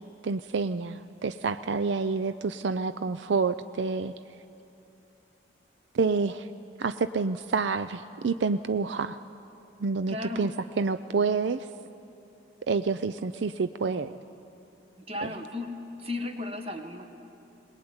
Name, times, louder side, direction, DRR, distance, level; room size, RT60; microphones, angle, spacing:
voice 1, 0.2-4.1 5.9-6.5 6.8-9.2 9.8-10.5 10.8-11.7 12.7-14.2 15.2-15.3, right 4 dB, 75° right, 12 dB, 0.5 m, -28 dB
voice 2, 10.1-10.5 15.0-17.1, left 2 dB, 30° right, 5 dB, 1.5 m, -35 dB
22.0 x 20.0 x 9.6 m, 2.9 s
head